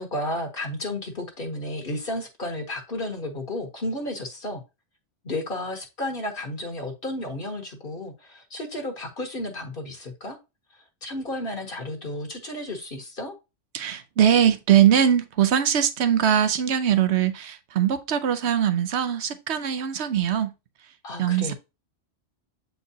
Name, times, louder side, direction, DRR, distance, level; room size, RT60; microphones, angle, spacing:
voice 1, 0.0-4.6 5.2-10.4 11.0-13.3 21.0-21.5, left 1 dB, 50° left, 1.3 m, -32 dB
voice 2, 13.7-20.5 21.2-21.5, right 9 dB, 70° right, 1.0 m, -21 dB
7.6 x 4.6 x 2.8 m
omnidirectional pair, 1.2 m